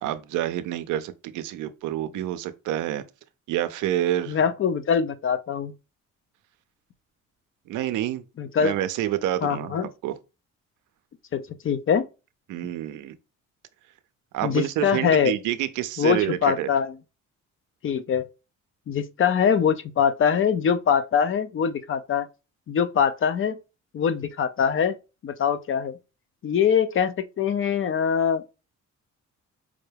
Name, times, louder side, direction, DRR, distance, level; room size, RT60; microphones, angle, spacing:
voice 1, 0.0-3.0 3.5-4.4 7.7-8.2 8.6-10.1 12.5-13.2 14.3-16.7, right 12 dB, 90° right, 0.5 m, -28 dB
voice 2, 4.3-5.7 8.4-8.8 9.4-9.9 11.3-12.1 14.4-15.3 16.0-16.9 17.8-18.3 18.9-22.3 22.7-23.6 23.9-25.0 25.2-25.9 26.4-28.4, left 7 dB, 45° left, 0.5 m, -23 dB
5.0 x 2.2 x 3.2 m
cardioid pair, 90°, 30 cm